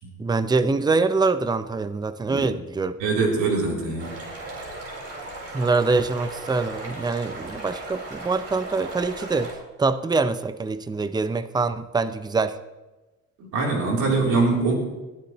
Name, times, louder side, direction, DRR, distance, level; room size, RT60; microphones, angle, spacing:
voice 1, 0.2-2.9 5.5-9.5 9.8-12.6, right 3 dB, 15° right, 12 dB, 0.6 m, -24 dB
voice 2, 3.0-4.2 13.4-14.7, right 3 dB, 90° right, -2 dB, 3.6 m, -23 dB
sound 1, 4.0-9.5, right 2 dB, 50° right, 4.3 m, -37 dB
20.0 x 10.5 x 3.1 m, 1.1 s
cardioid pair, 90°, 30 cm